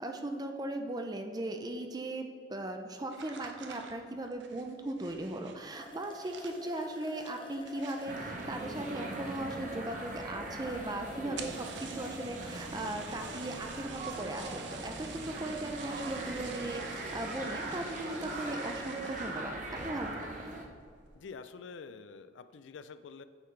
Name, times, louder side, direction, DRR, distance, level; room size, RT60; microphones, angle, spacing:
voice 1, 0.0-20.5, right 1 dB, 20° right, 5 dB, 0.5 m, -38 dB
sound 1, 3.1-9.2 9.5-10.0 10.3-10.4 10.7-10.8 11.2-19.6 20.0-20.4 20.8-21.2, right 5 dB, 75° right, 0.7 m, -48 dB
sound 2, 5.3-5.4 5.7-12.7, left 2 dB, 25° left, 0.8 m, -49 dB
sound 3, 8.1-20.6, right 2 dB, 45° right, 0.9 m, -41 dB
voice 2, 11.2-11.6 21.1-23.2, left 5 dB, 85° left, 12 dB, 0.4 m, -47 dB
8.8 x 5.7 x 3.2 m, 2.2 s
head